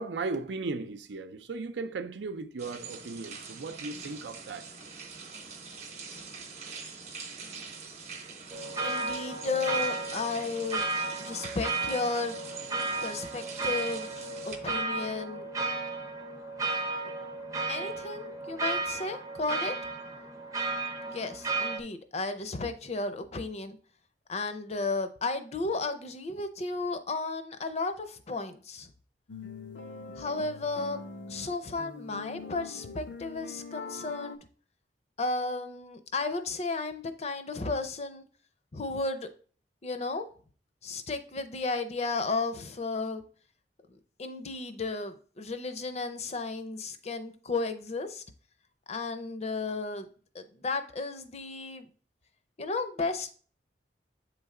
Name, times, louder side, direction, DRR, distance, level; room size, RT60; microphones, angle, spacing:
voice 1, 0.0-4.8, right 3 dB, 80° right, 0.5 m, -36 dB
sound 1, 2.6-14.6, right 4 dB, 40° right, 0.9 m, -44 dB
sound 2, 8.5-21.8, right 3 dB, 20° right, 0.6 m, -34 dB
voice 2, 8.8-10.8 11.2-12.4 13.0-14.1 14.4-15.5 17.7-19.7 21.1-23.8 24.3-28.9 30.2-31.0 31.3-34.4 35.2-38.3 38.7-39.3 39.8-40.3 40.8-43.2 44.2-48.2 48.9-50.1 50.3-51.9 52.6-53.4, left 3 dB, 35° left, 0.5 m, -33 dB
sound 3, 29.3-34.4, left 4 dB, 80° left, 0.7 m, -43 dB
7.8 x 3.3 x 3.7 m
head